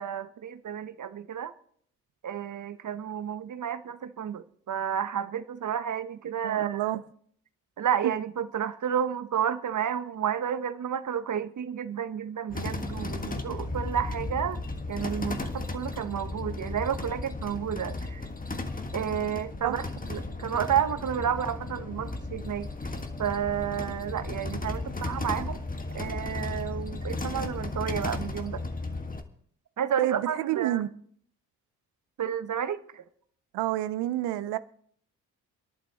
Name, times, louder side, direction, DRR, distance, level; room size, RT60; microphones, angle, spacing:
voice 1, 0.0-1.5 2.2-6.8 7.8-14.6 14.9-18.3 18.9-22.7 23.2-25.6 25.9-28.6 29.8-30.8 32.2-33.1, right 9 dB, 45° right, 1.0 m, -31 dB
voice 2, 6.4-7.0 8.0-8.1 19.6-19.8 30.0-30.9 33.5-34.6, right 14 dB, 70° right, 0.8 m, -28 dB
sound 1, 12.5-29.2, left 2 dB, 20° left, 1.6 m, -35 dB
28.5 x 11.0 x 3.0 m
hypercardioid pair, 45°, 43 cm